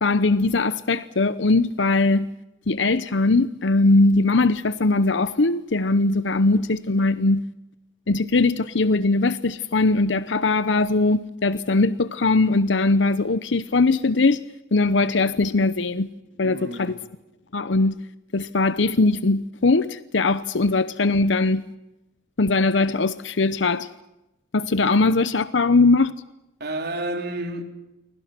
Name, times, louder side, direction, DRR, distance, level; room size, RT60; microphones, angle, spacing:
voice 1, 0.0-2.3 2.7-7.5 8.1-14.4 14.7-16.1 16.4-17.0 17.5-18.0 18.3-21.6 22.4-23.9 24.5-26.1, left 3 dB, 80° left, 0.8 m, -20 dB
voice 2, 16.4-17.0 26.6-27.6, right 1 dB, 60° right, 4.2 m, -30 dB
28.5 x 24.5 x 6.0 m
head